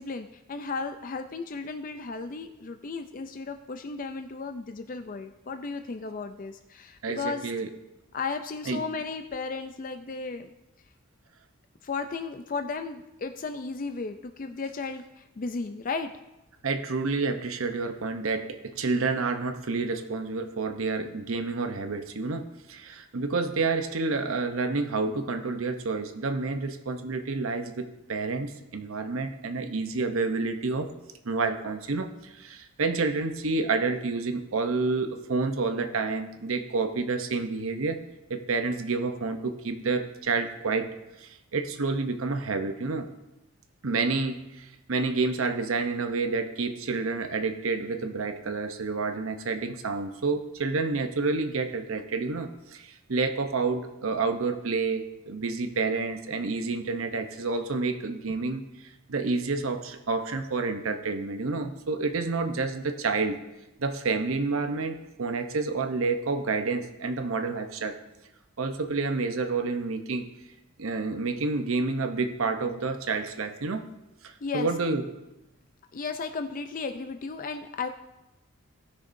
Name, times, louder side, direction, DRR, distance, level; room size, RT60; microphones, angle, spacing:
voice 1, 0.0-7.5 8.1-10.5 11.8-16.1 74.4-74.7 75.9-77.9, left 4 dB, 40° left, 7 dB, 0.4 m, -34 dB
voice 2, 7.0-7.7 8.6-8.8 16.6-30.9 31.2-38.0 38.3-40.9 41.2-43.1 43.8-63.4 63.8-68.0 68.6-70.3 70.8-73.8 74.2-75.1, right 3 dB, 80° right, 7 dB, 0.8 m, -29 dB
18.0 x 6.4 x 2.6 m, 0.94 s
head